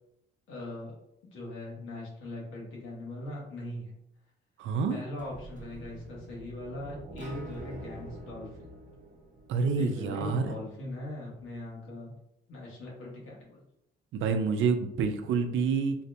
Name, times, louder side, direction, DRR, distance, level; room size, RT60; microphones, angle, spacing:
voice 1, 0.5-1.0 1.3-3.9 4.9-8.7 9.7-12.1 12.5-13.6, left 1 dB, 85° left, -4 dB, 1.3 m, -40 dB
voice 2, 4.6-5.0 9.5-10.5 14.1-16.0, right 5 dB, 75° right, 7 dB, 0.5 m, -27 dB
sound 1, 5.2-10.1, right 1 dB, 40° right, 0.8 m, -46 dB
3.9 x 2.2 x 2.6 m, 0.80 s
cardioid pair, 90°, 20 cm